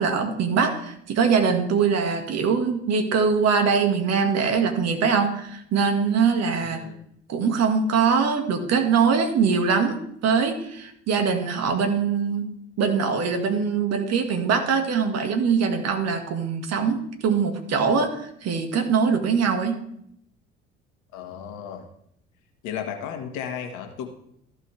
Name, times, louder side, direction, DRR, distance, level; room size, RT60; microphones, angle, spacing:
voice 1, 0.0-6.8 7.3-10.0 10.2-12.5 12.8-19.8, right 5 dB, 50° right, 5 dB, 1.8 m, -22 dB
voice 2, 6.6-7.0 21.1-21.9 22.6-24.1, left 8 dB, 65° left, 5 dB, 1.6 m, -34 dB
14.5 x 5.4 x 3.4 m, 0.71 s
hypercardioid pair, 60°, 32 cm